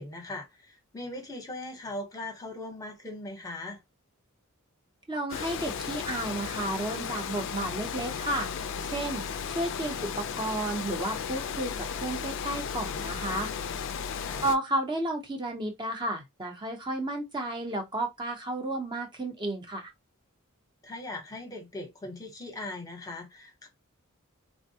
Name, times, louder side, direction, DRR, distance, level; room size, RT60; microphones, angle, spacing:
voice 1, 0.0-3.8 14.2-14.4 20.8-23.7, left 2 dB, 15° left, 0.8 m, -39 dB
voice 2, 5.1-8.5 8.9-13.5 14.4-19.9, right 1 dB, 20° right, 0.7 m, -32 dB
Water, 5.3-14.6, left 7 dB, 60° left, 0.4 m, -35 dB
3.3 x 2.1 x 2.7 m
head